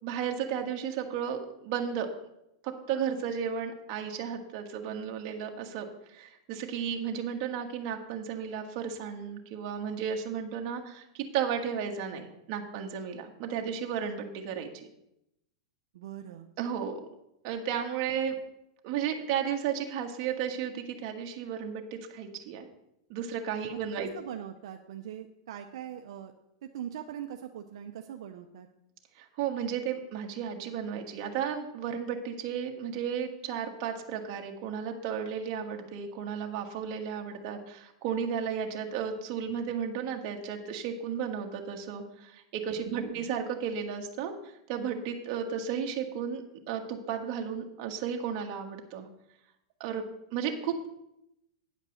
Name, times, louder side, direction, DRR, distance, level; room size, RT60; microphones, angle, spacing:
voice 1, 0.0-2.1 2.6-14.9 16.6-17.0 17.4-18.4 18.8-22.7 23.1-24.1 29.2-49.1 49.8-50.0 50.3-50.9, right 7 dB, 45° right, 3 dB, 1.4 m, -34 dB
voice 2, 15.9-16.5 23.7-26.3 26.6-28.7 42.8-43.3, right 10 dB, 70° right, 5 dB, 0.6 m, -42 dB
9.6 x 5.2 x 6.4 m, 0.83 s
supercardioid pair, 150°, 3 cm